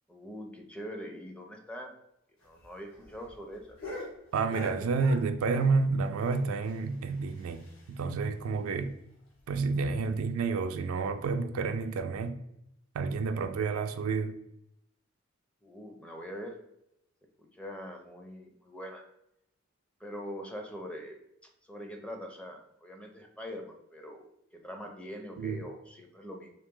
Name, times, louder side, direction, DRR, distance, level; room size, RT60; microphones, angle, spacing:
voice 1, 0.1-1.9 2.4-3.7 15.6-16.6 17.4-19.0 20.0-21.2 21.7-24.2 24.5-26.5, equal, 5° left, 0.5 m, -43 dB
sound 1, 2.4-5.8 6.1-8.1 8.4-8.5 8.8-8.9 9.3-9.4 10.0-10.3 11.1-11.2, left 1 dB, 70° left, 1.3 m, -45 dB
voice 2, 4.3-7.6 7.9-9.0 9.5-12.4 13.0-14.3 25.4-25.6, right 4 dB, 80° right, 0.3 m, -29 dB
3.2 x 2.9 x 3.6 m
head